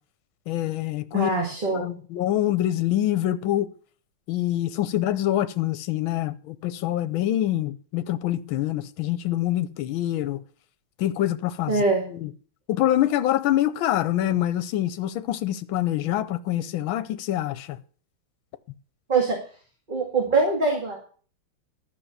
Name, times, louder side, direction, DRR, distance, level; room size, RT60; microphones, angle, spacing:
voice 1, 0.5-1.3 1.7-3.7 4.3-10.4 11.0-11.8 12.1-12.3 12.7-17.8, left 13 dB, 75° left, 1.5 m, -25 dB
voice 2, 1.1-1.9 11.7-12.0 19.1-19.4 19.9-21.0, right 3 dB, 25° right, 2.2 m, -23 dB
12.5 x 5.9 x 8.0 m
omnidirectional pair, 2.3 m